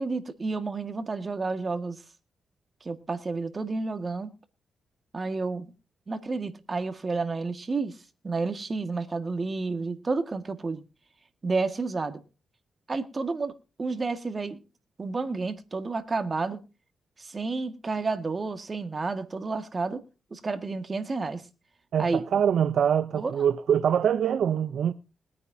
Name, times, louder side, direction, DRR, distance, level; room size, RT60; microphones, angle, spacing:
voice 1, 0.0-2.0 2.8-4.3 5.1-5.7 6.1-8.0 8.2-10.8 11.4-12.2 12.9-13.5 13.8-14.6 15.0-16.6 17.2-20.0 20.3-21.4 22.0-22.3 23.1-23.5, right 3 dB, 35° right, 1.8 m, -30 dB
voice 2, 21.9-24.9, right 8 dB, 80° right, 0.6 m, -24 dB
21.0 x 9.6 x 2.7 m
cardioid pair, 80°, 0 cm